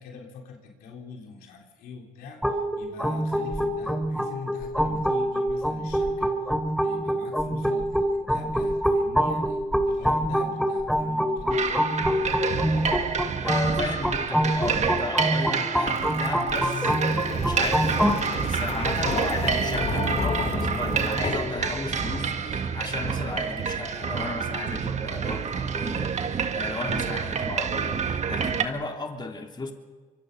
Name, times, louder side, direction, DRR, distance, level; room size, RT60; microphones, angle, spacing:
voice 1, 0.0-6.3 6.8-9.6 9.9-11.6, left 4 dB, 90° left, 1 dB, 3.7 m, -43 dB
sound 1, 2.4-18.2, equal, ahead, 2.7 m, -26 dB
sound 2, 11.5-28.6, right 6 dB, 50° right, 1.8 m, -28 dB
voice 2, 13.4-29.7, left 3 dB, 30° left, 2 dB, 3.3 m, -35 dB
sound 3, 15.9-22.6, left 5 dB, 45° left, 2.2 m, -33 dB
25.0 x 23.5 x 5.6 m, 1.4 s
cardioid pair, 75°, 15 cm